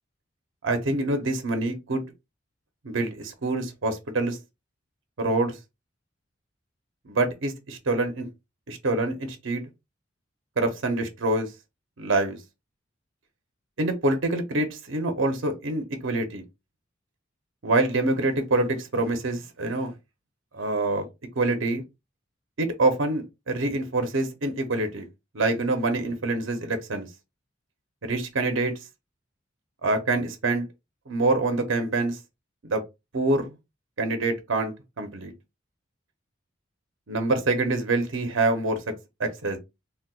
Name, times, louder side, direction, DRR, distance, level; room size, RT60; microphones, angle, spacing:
voice 1, 0.6-2.0 2.8-4.4 5.2-5.6 7.1-8.3 8.7-9.6 10.6-11.5 12.0-12.4 13.8-16.4 17.6-19.9 20.5-21.1 21.4-21.8 22.6-25.0 25.3-27.1 28.0-28.7 29.8-30.7 31.1-32.2 32.6-32.8 33.1-33.6 34.0-35.3 37.1-38.8 39.2-39.6, right 2 dB, 75° right, 0.7 m, -26 dB
4.0 x 2.2 x 2.3 m
head